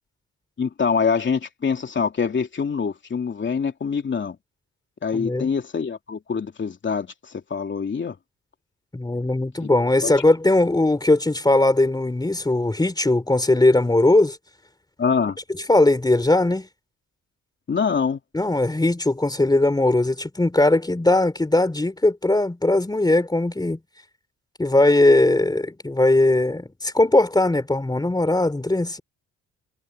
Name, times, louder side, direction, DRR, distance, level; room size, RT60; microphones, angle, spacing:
voice 1, 0.6-4.4 5.0-8.2 9.6-9.7 10.0-10.1 15.0-15.4 17.7-18.2, left 6 dB, 40° left, 3.0 m, -25 dB
voice 2, 5.1-5.5 8.9-14.4 15.7-16.7 18.3-23.8 24.6-29.0, left 2 dB, 15° left, 3.6 m, -19 dB
cardioid pair, 90°, 30 cm